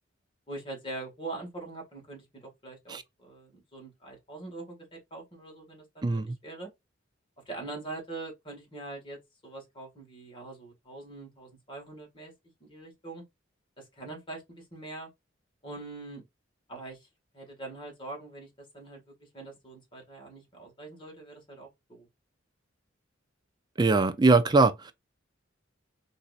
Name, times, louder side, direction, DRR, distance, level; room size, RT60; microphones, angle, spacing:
voice 1, 0.5-6.7 7.5-12.3 12.6-13.2 13.8-15.1 15.6-16.3 16.7-17.1 17.3-22.1, right 2 dB, 25° left, 1.7 m, -43 dB
voice 2, 6.0-6.4 23.8-24.9, right 3 dB, 20° right, 0.4 m, -22 dB
4.2 x 2.7 x 2.4 m
head